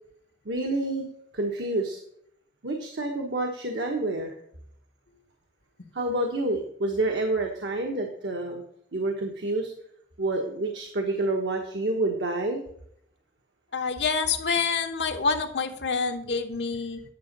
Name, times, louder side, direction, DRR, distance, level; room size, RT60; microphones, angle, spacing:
voice 1, 0.4-1.1 1.3-2.0 2.6-4.3 5.9-8.6 8.9-9.7 10.2-12.6, right 2 dB, 75° right, 2 dB, 1.3 m, -28 dB
voice 2, 13.7-17.0, left 5 dB, 70° left, 5 dB, 1.2 m, -27 dB
10.5 x 6.9 x 5.3 m, 0.69 s
head